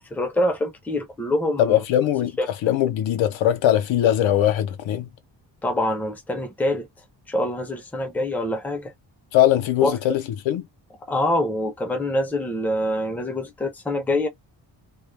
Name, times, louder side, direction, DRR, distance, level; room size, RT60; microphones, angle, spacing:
voice 1, 0.0-1.8 2.4-2.5 5.6-6.9 7.3-8.9 9.8-10.0 11.1-14.3, left 1 dB, 5° left, 0.4 m, -25 dB
voice 2, 1.6-5.1 9.3-10.7, left 12 dB, 90° left, 0.6 m, -21 dB
2.2 x 2.0 x 3.1 m
wide cardioid pair, 150°, 45 cm